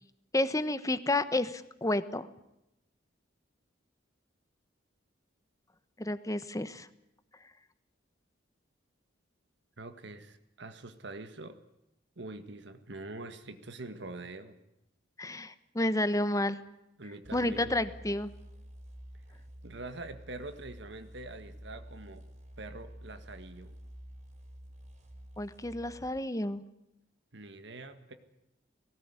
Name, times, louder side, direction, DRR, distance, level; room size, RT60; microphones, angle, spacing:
voice 1, 0.3-2.3 6.0-6.9 15.2-16.6 17.3-18.3 25.4-26.6, left 1 dB, 20° left, 13 dB, 1.2 m, -30 dB
voice 2, 9.8-11.6 12.2-14.6 17.0-17.8 19.6-22.2 22.6-23.8 27.3-28.1, right 2 dB, 65° right, 9 dB, 1.8 m, -44 dB
sound 1, 17.2-26.2, equal, 40° right, 4.5 m, -50 dB
19.0 x 18.0 x 9.8 m, 0.87 s
head